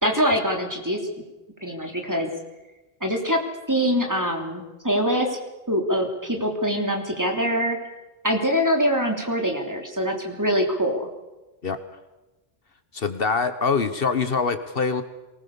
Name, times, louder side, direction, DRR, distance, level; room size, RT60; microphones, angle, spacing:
voice 1, 0.0-1.0 1.6-2.3 3.0-3.4 3.7-5.4 5.7-7.8 8.2-11.1, equal, 15° right, 3 dB, 3.1 m, -24 dB
voice 2, 12.9-15.0, left 5 dB, 65° left, 10 dB, 1.4 m, -24 dB
23.0 x 19.5 x 7.0 m, 1.1 s
omnidirectional pair, 1.1 m